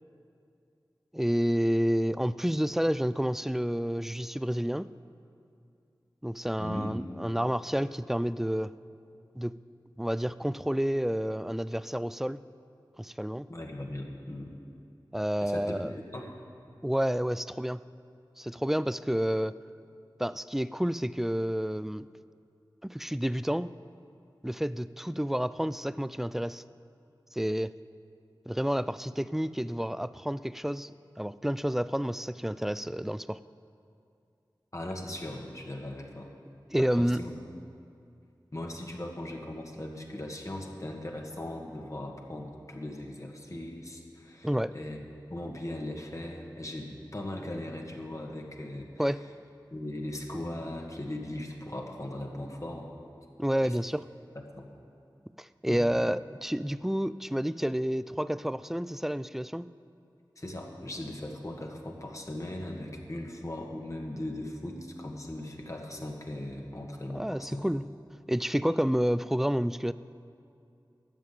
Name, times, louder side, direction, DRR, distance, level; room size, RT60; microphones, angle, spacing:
voice 1, 1.1-4.9 6.2-8.7 9.4-9.6 10.0-12.4 13.0-13.5 15.1-15.9 16.8-17.8 18.4-19.6 20.2-22.1 22.8-23.7 24.4-26.6 27.3-27.8 28.5-30.9 31.2-33.4 36.7-37.2 44.4-44.7 49.0-49.2 53.4-54.1 55.4-59.7 67.1-67.9 68.3-69.9, equal, 5° right, 16 dB, 0.3 m, -29 dB
voice 2, 6.6-6.9 13.5-14.5 15.4-16.3 34.7-36.3 36.8-37.3 38.5-45.0 45.3-48.9 49.7-52.9 53.6-53.8 54.3-54.7 55.7-55.9 60.4-67.7, left 1 dB, 40° left, 1 dB, 1.6 m, -39 dB
12.5 x 7.4 x 8.4 m, 2.5 s
wide cardioid pair, 55°, 8 cm